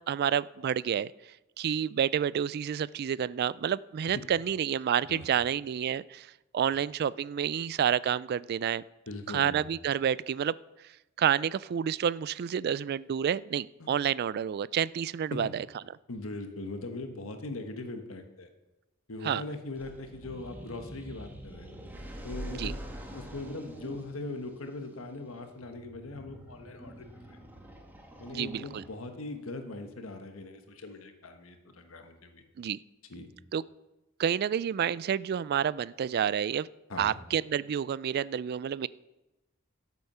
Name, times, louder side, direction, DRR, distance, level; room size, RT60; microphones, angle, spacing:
voice 1, 0.1-1.1 1.6-6.3 6.5-8.8 9.3-10.5 11.2-15.6 19.2-19.4 22.6-22.7 28.3-28.8 32.6-32.8 33.5-33.6 34.2-36.7 37.0-38.9, right 8 dB, 50° right, 20 dB, 0.3 m, -29 dB
voice 2, 9.1-9.6 13.8-13.9 15.3-15.5 16.1-18.5 19.1-21.7 22.2-27.4 28.2-32.4 33.1-33.3 36.9-37.2, left 2 dB, 85° left, 6 dB, 1.3 m, -40 dB
sound 1, 19.7-29.3, equal, 10° right, 1.5 m, -45 dB
12.5 x 8.4 x 5.6 m, 0.99 s
head